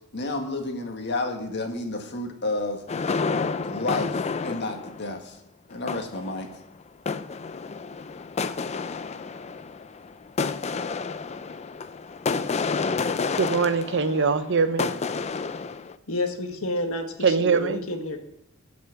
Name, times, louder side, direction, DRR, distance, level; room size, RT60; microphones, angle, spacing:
voice 1, 0.1-2.8 3.6-5.4 5.7-6.5, left 2 dB, 55° left, 4 dB, 1.8 m, -31 dB
sound 1, 2.9-5.2 5.7-6.5 7.1-15.9, left 4 dB, 30° left, 0.4 m, -30 dB
voice 2, 13.4-14.9 17.2-17.8, right 5 dB, 60° right, 11 dB, 0.8 m, -22 dB
voice 3, 16.1-18.2, left 2 dB, 70° left, 5 dB, 1.7 m, -30 dB
15.5 x 6.1 x 6.0 m, 0.82 s
head